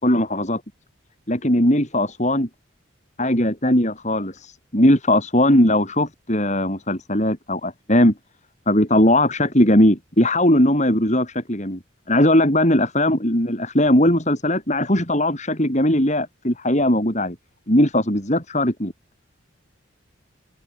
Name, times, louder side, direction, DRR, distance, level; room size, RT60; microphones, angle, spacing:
voice 1, 0.0-0.6 1.3-2.5 3.2-8.1 8.7-11.8 12.1-17.4 17.7-18.9, left 1 dB, 35° left, 6.4 m, -19 dB
open air
head